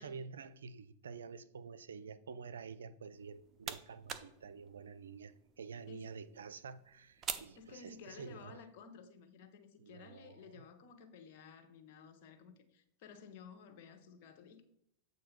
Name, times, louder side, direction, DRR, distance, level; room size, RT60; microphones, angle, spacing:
voice 1, 0.0-8.6 9.8-10.6, right 5 dB, 85° right, 0.4 m, -49 dB
sound 1, 3.1-8.4, right 7 dB, 30° right, 0.6 m, -48 dB
voice 2, 5.9-6.2 7.6-14.6, left 6 dB, 55° left, 1.0 m, -55 dB
7.7 x 2.7 x 5.9 m
hypercardioid pair, 110°, 0 cm